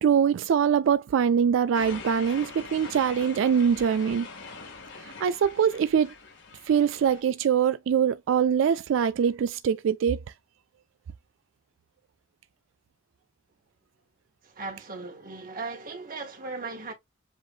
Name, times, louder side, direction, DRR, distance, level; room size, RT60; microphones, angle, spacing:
voice 1, 0.0-4.3 5.0-6.1 6.6-10.2, right 7 dB, 85° right, 0.3 m, -23 dB
sound 1, 1.7-7.2, left 4 dB, 75° left, 2.0 m, -43 dB
voice 2, 14.4-16.9, right 3 dB, 45° right, 2.0 m, -37 dB
7.6 x 2.7 x 2.4 m
head